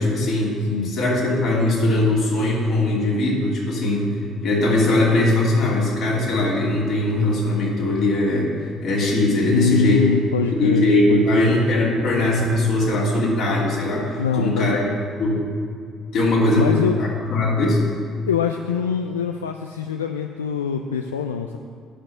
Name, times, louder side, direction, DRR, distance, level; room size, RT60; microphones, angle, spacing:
voice 1, 0.0-0.5 0.8-4.1 4.4-8.5 8.8-10.0 10.6-14.8 15.2-15.4 16.1-17.8, left 2 dB, 55° left, -4 dB, 3.1 m, -20 dB
voice 2, 9.5-11.5 14.2-15.0 16.5-17.0 18.3-21.6, left 5 dB, 80° left, 5 dB, 0.4 m, -23 dB
10.0 x 6.8 x 8.2 m, 2.2 s
figure-of-eight pair, 50°, 0 cm